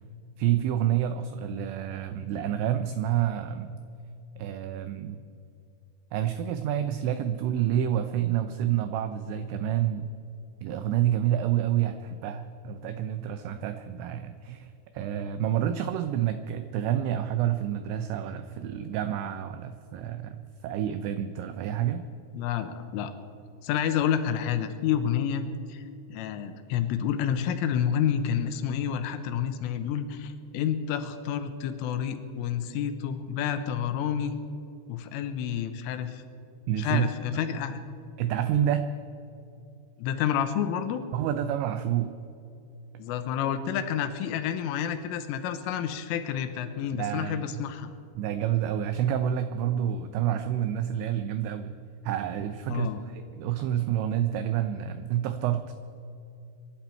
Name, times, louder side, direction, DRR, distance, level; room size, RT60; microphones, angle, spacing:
voice 1, 0.4-3.8 4.4-5.2 6.1-10.1 10.6-22.1 36.7-37.1 38.2-38.9 41.1-42.1 46.9-47.6 48.2-51.8 52.0-55.7, right 10 dB, 85° right, 9 dB, 2.6 m, -28 dB
voice 2, 22.3-23.1 23.6-25.8 26.1-34.3 34.9-36.2 36.8-37.8 40.0-41.0 43.0-47.9 52.7-53.0, left 8 dB, 80° left, 9 dB, 3.3 m, -29 dB
25.0 x 12.0 x 4.4 m, 2.7 s
omnidirectional pair, 6.0 m